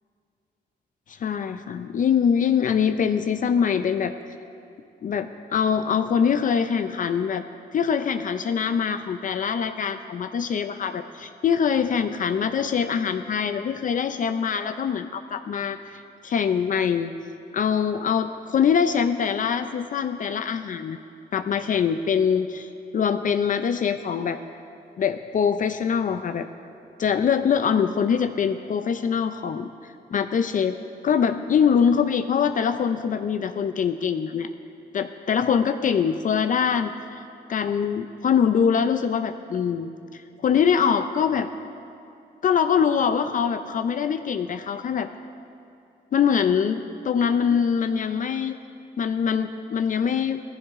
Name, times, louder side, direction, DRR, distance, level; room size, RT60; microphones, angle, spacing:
voice 1, 1.1-4.1 5.0-7.4 7.7-17.1 17.5-21.0 21.3-24.4 25.0-26.5 27.0-29.7 30.1-30.8 31.0-34.5 34.9-37.2 37.5-41.5 42.4-45.1 46.1-48.6 49.0-50.4, left 7 dB, 50° left, 9 dB, 0.5 m, -23 dB
18.0 x 15.0 x 3.6 m, 2.5 s
cardioid pair, 125°, 17 cm